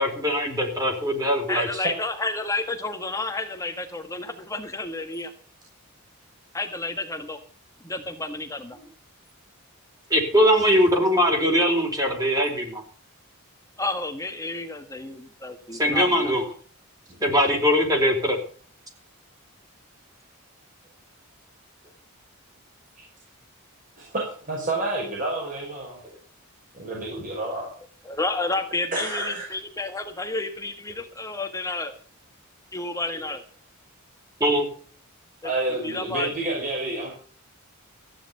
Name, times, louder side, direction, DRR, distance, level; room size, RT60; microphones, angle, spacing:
voice 1, 0.0-1.7 10.1-12.8 15.7-16.4 17.2-18.4 34.4-34.7, equal, 15° right, 3 dB, 4.3 m, -21 dB
voice 2, 1.5-5.3 6.5-7.4 7.8-8.8 13.8-16.3 28.0-31.9 32.7-33.4 35.4-36.3, left 2 dB, 15° left, 6 dB, 1.6 m, -31 dB
voice 3, 24.0-26.0 26.7-27.7 28.9-29.6 35.4-37.1, right 2 dB, 40° right, -2 dB, 5.4 m, -29 dB
15.0 x 10.0 x 6.9 m, 0.42 s
head